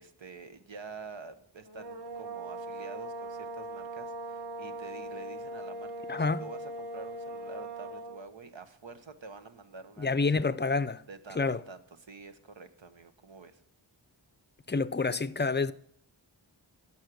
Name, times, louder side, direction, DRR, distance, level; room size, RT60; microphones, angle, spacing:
voice 1, 0.0-10.5 11.1-13.6, right 4 dB, 75° right, 1.2 m, -48 dB
sound 1, 1.6-8.3, right 2 dB, 55° right, 1.8 m, -40 dB
voice 2, 6.1-6.4 10.0-11.0 11.4-11.6 14.7-15.7, left 4 dB, 25° left, 0.5 m, -28 dB
11.5 x 7.3 x 6.2 m
wide cardioid pair, 60°, 46 cm